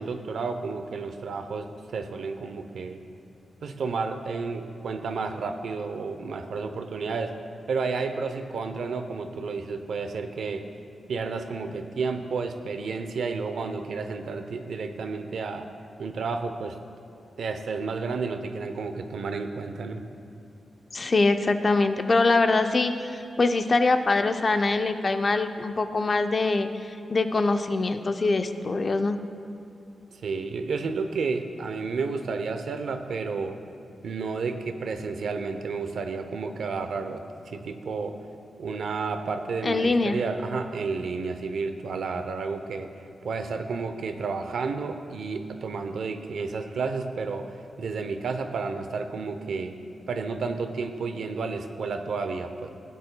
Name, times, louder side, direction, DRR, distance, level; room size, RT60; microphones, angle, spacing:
voice 1, 0.0-3.0 3.6-7.3 7.7-10.6 11.1-15.7 16.0-16.7 17.4-20.0 30.1-33.6 34.0-38.1 38.6-42.9 43.2-49.7 50.1-52.7, right 4 dB, 75° right, 7 dB, 0.6 m, -31 dB
voice 2, 20.9-29.2 39.6-40.2, left 3 dB, 35° left, 8 dB, 0.4 m, -23 dB
16.5 x 9.4 x 2.2 m, 2.8 s
wide cardioid pair, 150°, 0 cm